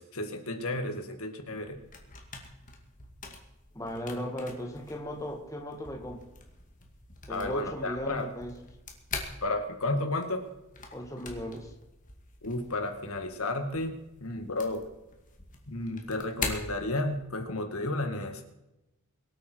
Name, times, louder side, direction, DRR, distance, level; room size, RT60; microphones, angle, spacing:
voice 1, 0.0-1.8 7.3-8.3 9.4-10.4 12.4-14.8 15.7-18.4, left 2 dB, 80° left, 6 dB, 2.0 m, -32 dB
sound 1, 1.5-17.5, left 4 dB, 35° left, 2.2 m, -44 dB
voice 2, 3.7-6.2 7.3-8.5 10.9-11.7, equal, 15° left, 2 dB, 1.7 m, -37 dB
23.5 x 8.7 x 4.6 m, 0.95 s
head